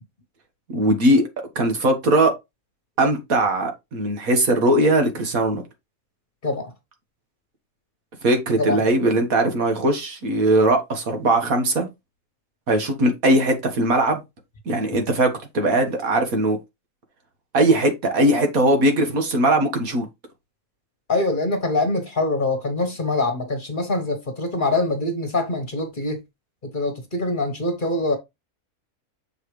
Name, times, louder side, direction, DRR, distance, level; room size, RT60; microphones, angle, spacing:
voice 1, 0.7-1.3 1.6-2.3 3.0-5.6 8.2-11.9 12.7-14.2 14.7-16.6 17.5-20.1, right 1 dB, 70° right, 2.0 m, -20 dB
voice 2, 21.1-26.2 26.6-28.2, left 2 dB, 35° left, 1.4 m, -24 dB
7.1 x 4.9 x 3.2 m
omnidirectional pair, 1.6 m